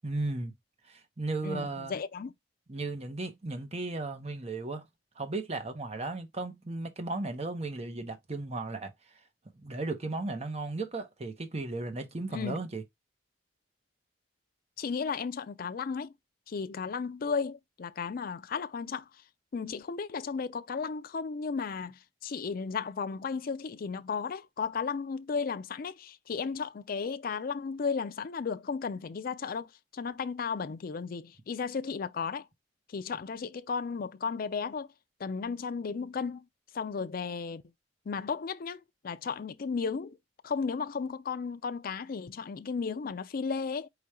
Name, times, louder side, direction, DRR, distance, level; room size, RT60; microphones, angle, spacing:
voice 1, 0.0-0.5 0.9-1.9 2.7-4.9 5.2-8.9 9.5-12.8, right 2 dB, 35° right, 0.8 m, -35 dB
voice 2, 1.4-2.3 12.3-12.6 14.8-16.1 16.5-19.1 19.5-32.5 32.9-34.9 35.2-36.5 36.7-37.6 38.1-40.2 40.4-43.9, left 5 dB, 50° left, 0.4 m, -34 dB
4.9 x 2.3 x 4.2 m
head